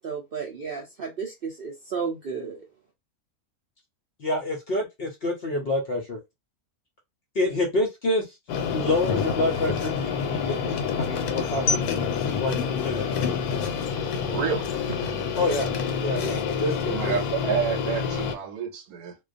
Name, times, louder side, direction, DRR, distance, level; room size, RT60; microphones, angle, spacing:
voice 1, 0.0-2.6, right 5 dB, 65° right, 0.5 m, -33 dB
voice 2, 4.2-6.2 7.3-8.4 8.7-11.9 12.4-13.1 15.4-15.7 16.0-17.1, left 2 dB, 60° left, 0.6 m, -27 dB
sound 1, 8.5-18.3, left 6 dB, 90° left, 1.1 m, -27 dB
voice 3, 14.2-15.0 16.9-19.2, right 7 dB, 80° right, 1.1 m, -29 dB
2.3 x 2.2 x 2.4 m
omnidirectional pair, 1.6 m